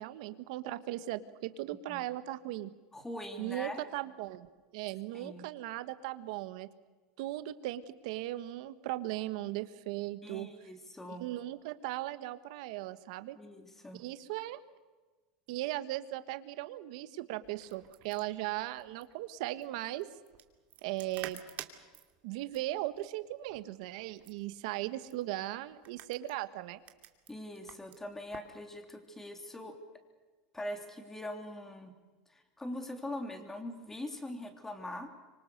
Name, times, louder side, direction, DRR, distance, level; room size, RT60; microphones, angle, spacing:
voice 1, 0.0-2.7 3.4-4.5 4.7-6.7 7.2-10.5 11.2-13.4 13.9-14.6 15.5-20.1 20.8-21.4 22.2-26.8, right 15 dB, 70° right, 12 dB, 1.4 m, -38 dB
voice 2, 2.9-3.8 5.1-5.5 10.2-11.3 13.3-14.0 27.3-29.8 30.5-31.9 32.3-35.1, left 1 dB, 10° left, 6 dB, 3.3 m, -42 dB
sound 1, 17.4-28.6, right 11 dB, 45° right, 2.6 m, -52 dB
25.5 x 25.0 x 6.7 m, 1.3 s
supercardioid pair, 135°, 4 cm